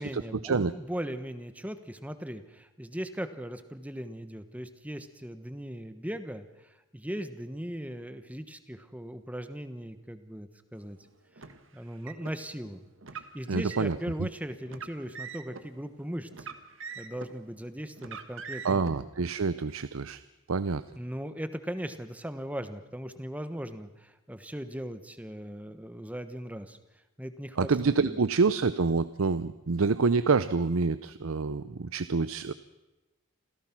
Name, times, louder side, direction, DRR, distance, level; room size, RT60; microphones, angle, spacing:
voice 1, 0.0-11.0 11.3-11.5 11.7-12.8 13.1-16.5 16.9-19.0 20.9-26.8 27.2-27.7 28.0-28.2, equal, 5° right, 10 dB, 1.2 m, -38 dB
Car, 11.4-12.3 13.0-14.0 14.7-15.6 16.3-17.4 18.0-18.9, right 5 dB, 65° right, 1.6 m, -43 dB
voice 2, 13.5-14.3 18.6-20.2 20.5-20.8 27.6-32.5, right 4 dB, 85° right, 14 dB, 0.6 m, -27 dB
27.0 x 16.0 x 6.0 m, 1.1 s
head